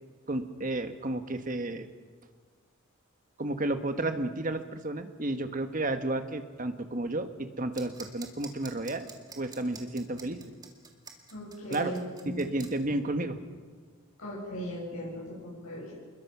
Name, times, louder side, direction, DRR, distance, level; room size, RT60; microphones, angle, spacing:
voice 1, 0.3-1.9 3.4-9.1 9.4-10.5 11.7-11.9 12.3-13.4, right 2 dB, 40° right, 8 dB, 1.4 m, -32 dB
sound 1, 7.7-12.7, right 5 dB, 20° right, 2.2 m, -46 dB
voice 2, 11.3-12.5 14.2-15.9, equal, 90° left, -6 dB, 7.9 m, -38 dB
27.0 x 21.5 x 6.1 m, 1.6 s
head